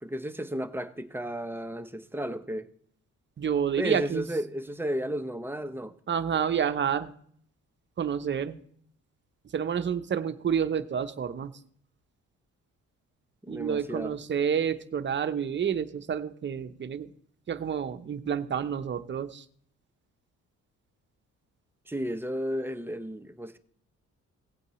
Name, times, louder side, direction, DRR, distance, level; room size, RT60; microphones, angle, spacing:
voice 1, 0.0-2.7 3.8-5.9 13.4-14.2 21.9-23.6, equal, 5° right, 0.8 m, -33 dB
voice 2, 3.4-4.2 6.1-7.1 8.0-8.6 9.5-11.5 13.5-17.1 17.5-19.4, right 7 dB, 40° right, 0.8 m, -29 dB
17.0 x 8.4 x 3.1 m
cardioid pair, 90°, 30 cm